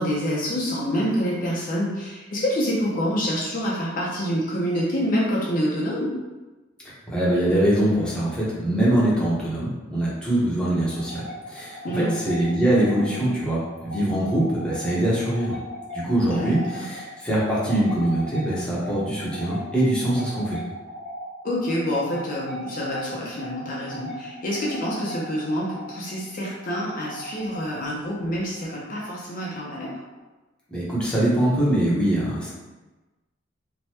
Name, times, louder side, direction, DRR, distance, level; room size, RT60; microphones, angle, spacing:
voice 1, 0.0-6.1 11.8-12.2 16.3-16.9 21.4-29.9, equal, 45° left, -5 dB, 0.5 m, -27 dB
voice 2, 7.1-15.6 15.9-20.6 30.7-32.5, right 1 dB, 5° left, -8 dB, 0.8 m, -23 dB
sound 1, 10.8-30.1, equal, 65° right, 1.2 m, -39 dB
3.2 x 2.2 x 2.8 m, 1.2 s
head